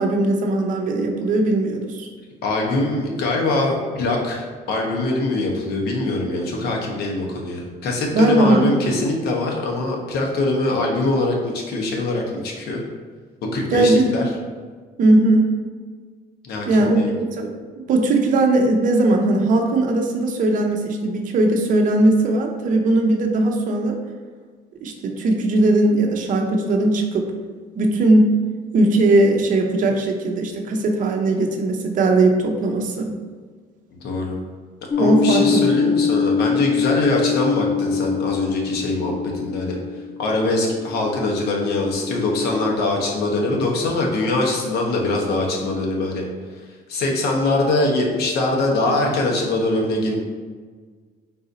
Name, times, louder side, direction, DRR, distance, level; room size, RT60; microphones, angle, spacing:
voice 1, 0.0-2.1 8.1-8.7 13.7-14.1 15.0-15.5 16.6-17.0 17.3-17.5 17.9-24.0 24.8-27.3 27.7-28.3 28.7-33.1 35.0-35.7, right 2 dB, 50° right, 2 dB, 0.6 m, -18 dB
voice 2, 2.4-12.8 13.5-14.3 16.4-17.1 34.0-34.4 35.0-39.8 40.2-46.2 46.9-50.2, left 2 dB, 70° left, 0 dB, 0.9 m, -23 dB
sound 1, 34.9-42.8, left 6 dB, 15° left, 0.3 m, -24 dB
4.0 x 2.6 x 4.0 m, 1.5 s
cardioid pair, 110°, 17 cm